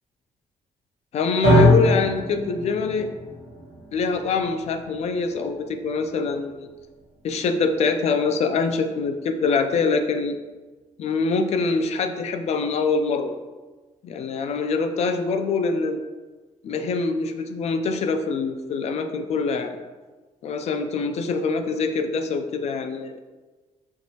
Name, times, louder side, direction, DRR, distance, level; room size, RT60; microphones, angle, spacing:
voice 1, 1.1-3.1 3.9-6.7 7.2-10.4 11.0-13.3 14.0-16.0 16.6-19.7 20.4-23.2, left 4 dB, 55° left, 8 dB, 0.4 m, -24 dB
sound 1, 1.4-9.7, equal, 70° right, 1.1 m, -26 dB
4.5 x 3.1 x 2.8 m, 1.3 s
cardioid pair, 135°, 13 cm